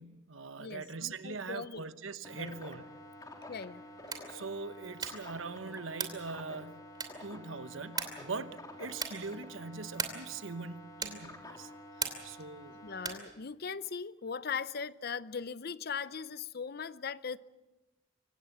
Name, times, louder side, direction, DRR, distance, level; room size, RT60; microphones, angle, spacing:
voice 1, 0.0-2.8 4.3-6.8 7.2-11.7 12.0-12.8, right 4 dB, 90° right, 1.0 m, -42 dB
voice 2, 0.6-1.8 2.3-2.6 3.5-3.8 12.8-17.4, left 6 dB, 50° left, 0.6 m, -39 dB
sound 1, 2.2-13.2, left 1 dB, 20° left, 3.0 m, -50 dB
sound 2, 4.0-4.4 4.9-5.3 5.9-6.3 6.9-7.3 8.0-8.3 8.9-9.3 9.9-10.3 11.0-11.3 12.0-12.4 13.0-13.3, right 5 dB, 20° right, 2.8 m, -38 dB
24.5 x 18.0 x 7.2 m
head